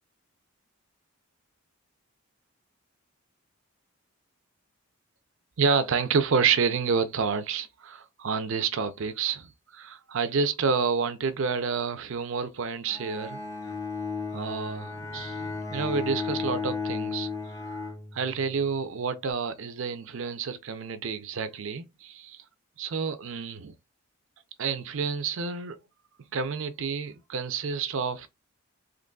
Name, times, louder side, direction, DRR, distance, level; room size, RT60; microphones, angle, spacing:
voice 1, 5.6-13.4 14.3-17.3 17.5-17.8 18.1-22.4 22.8-23.7 24.6-25.8 26.3-28.3, right 5 dB, 65° right, 0.5 m, -29 dB
Bowed string instrument, 12.9-18.7, left 4 dB, 15° left, 0.4 m, -34 dB
3.8 x 3.0 x 2.2 m
head